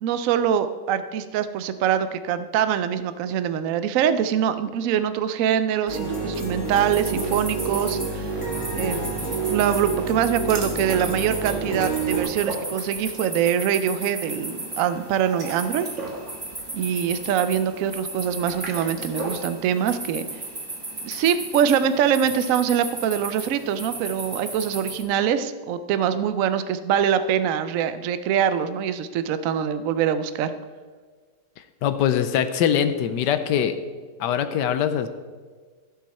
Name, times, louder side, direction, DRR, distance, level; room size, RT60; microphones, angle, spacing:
voice 1, 0.0-8.3 8.7-9.0 9.5-15.9 16.7-20.3 21.0-30.5, right 9 dB, 70° right, 11 dB, 0.7 m, -24 dB
sound 1, 5.9-12.2, right 3 dB, 15° left, 2.5 m, -28 dB
sound 2, 6.6-25.0, right 2 dB, 20° right, 0.8 m, -36 dB
sound 3, 10.4-13.3 13.6-13.9 15.1-19.5, right 2 dB, 40° right, 1.7 m, -37 dB
voice 2, 31.8-33.7 34.2-35.1, left 9 dB, 75° left, 10 dB, 1.2 m, -22 dB
15.5 x 6.1 x 4.2 m, 1.5 s
omnidirectional pair, 2.0 m